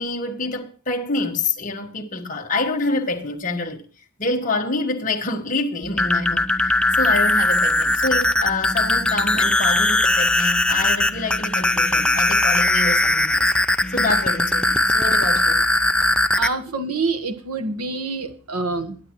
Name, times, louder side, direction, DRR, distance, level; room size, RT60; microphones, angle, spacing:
voice 1, 0.0-3.8 4.2-13.5 13.9-15.6, left 3 dB, 35° left, 1.4 m, -26 dB
sound 1, 5.8-16.5, left 1 dB, 5° left, 0.4 m, -19 dB
voice 2, 16.3-19.0, right 3 dB, 85° right, 1.3 m, -26 dB
21.5 x 9.6 x 3.0 m
head